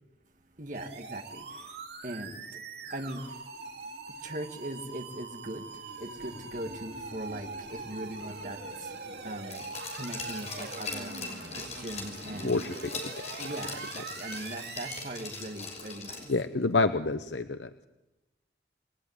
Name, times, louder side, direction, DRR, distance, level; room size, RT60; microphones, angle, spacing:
voice 1, 0.6-1.5 2.0-2.4 2.9-3.2 4.2-5.6 6.0-8.9 9.2-9.6 9.9-12.7 13.4-16.3, right 1 dB, 45° right, 2.1 m, -40 dB
sound 1, 0.7-15.6, right 3 dB, 65° right, 3.8 m, -43 dB
Glass, 9.5-16.4 16.8-16.9, left 4 dB, 40° left, 6.3 m, -41 dB
voice 2, 12.4-13.1 16.3-17.8, left 3 dB, 80° left, 0.9 m, -28 dB
28.5 x 20.5 x 9.7 m
head